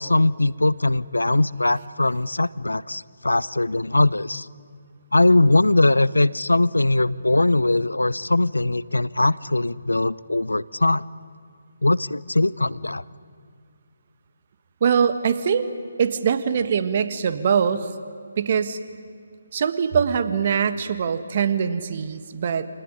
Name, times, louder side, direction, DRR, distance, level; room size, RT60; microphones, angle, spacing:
voice 1, 0.0-4.5 5.1-11.0 11.8-13.0, left 2 dB, 85° left, 20 dB, 0.6 m, -20 dB
voice 2, 14.8-15.7 16.0-17.9 18.4-18.8 19.5-22.7, right 7 dB, 45° right, 11 dB, 1.6 m, -22 dB
27.0 x 19.0 x 10.0 m, 2.3 s
figure-of-eight pair, 150°, 0 cm